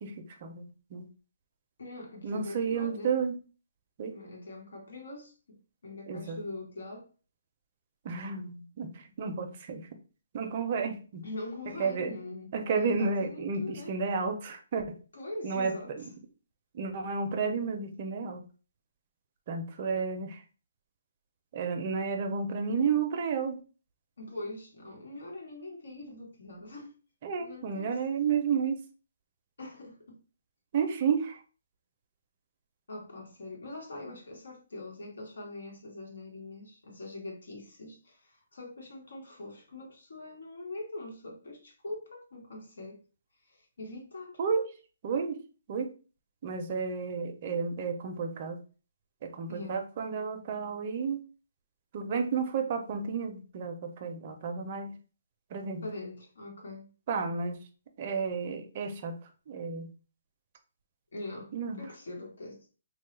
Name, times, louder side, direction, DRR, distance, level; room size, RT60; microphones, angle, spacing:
voice 1, 0.4-1.0 2.2-3.4 4.0-4.1 6.1-6.4 8.0-9.9 10.3-11.2 11.8-12.1 12.5-15.0 15.4-16.0 16.7-18.4 19.5-20.4 21.5-23.6 27.2-28.8 30.7-31.4 44.4-44.6 45.0-45.4 45.7-45.9 46.4-48.6 49.2-51.2 51.9-54.9 55.5-55.8 57.1-57.6 58.0-59.1 59.5-59.9 61.5-61.8, right 5 dB, 40° right, 0.5 m, -31 dB
voice 2, 1.8-3.2 4.1-7.1 11.2-14.0 15.1-16.1 24.2-26.9 27.4-28.0 29.6-30.2 32.9-43.0 43.5-44.4 49.5-49.8 55.8-56.9 61.1-62.7, left 2 dB, 80° left, 1.2 m, -43 dB
3.0 x 2.2 x 3.1 m
hypercardioid pair, 155°, 0 cm